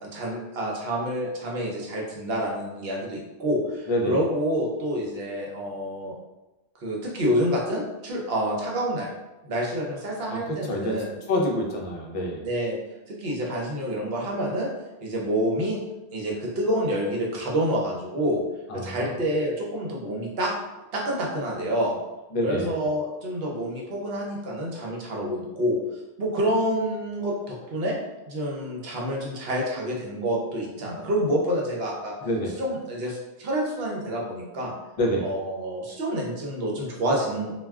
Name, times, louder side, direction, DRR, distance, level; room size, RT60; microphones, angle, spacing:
voice 1, 0.0-6.1 6.8-9.1 9.4-11.1 12.4-12.8 13.1-14.7 15.0-15.8 16.1-18.4 18.7-20.5 20.9-22.0 22.4-25.8 26.2-28.0 28.3-32.1 32.5-34.7 35.2-37.5, equal, 65° right, -2 dB, 0.9 m, -28 dB
voice 2, 10.3-11.0 11.3-12.4 18.7-19.1 22.3-22.8 32.2-32.5 35.0-35.2, left 1 dB, 45° left, -1 dB, 0.4 m, -27 dB
2.3 x 2.2 x 3.4 m, 1.0 s
omnidirectional pair, 1.1 m